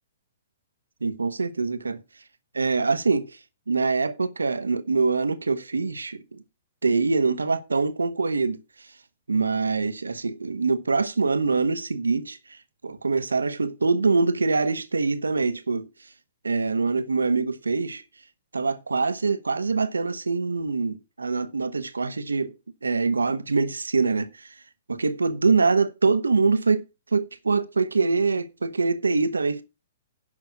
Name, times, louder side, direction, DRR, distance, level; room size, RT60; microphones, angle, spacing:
voice 1, 1.0-2.0 2.5-3.4 3.7-6.4 6.8-8.6 9.3-12.6 12.8-15.9 16.4-18.0 18.5-22.5 22.8-24.5 24.9-26.8 27.1-29.6, right 4 dB, 80° right, 1.2 m, -24 dB
11.0 x 6.0 x 5.7 m
figure-of-eight pair, 115°, 0 cm